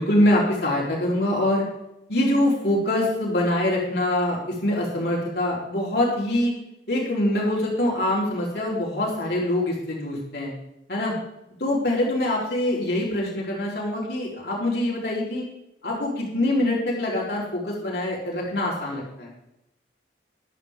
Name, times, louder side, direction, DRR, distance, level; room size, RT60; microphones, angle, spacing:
voice 1, 0.0-1.7 2.1-6.5 6.9-10.5 10.9-11.1 11.6-15.4 15.8-19.3, left 1 dB, 60° left, -4 dB, 4.0 m, -24 dB
13.0 x 12.5 x 3.7 m, 0.87 s
head